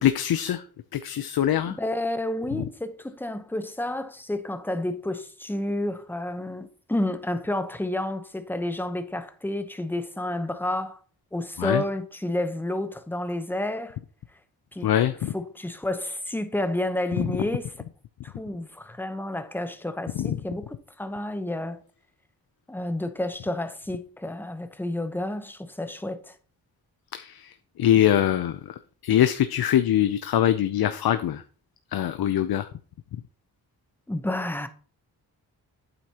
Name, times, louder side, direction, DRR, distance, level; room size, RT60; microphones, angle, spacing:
voice 1, 0.0-0.6 0.9-1.8 11.6-11.8 14.8-15.3 17.2-17.3 20.2-20.4 27.1-27.5 27.8-28.6 29.0-31.4 31.9-32.7, left 11 dB, 75° left, 0.6 m, -23 dB
voice 2, 1.7-11.0 11.3-14.0 14.7-14.9 15.3-17.8 18.2-21.8 22.7-26.3 34.1-34.7, left 1 dB, 5° left, 0.9 m, -30 dB
9.0 x 8.1 x 2.9 m
wide cardioid pair, 105°, 37 cm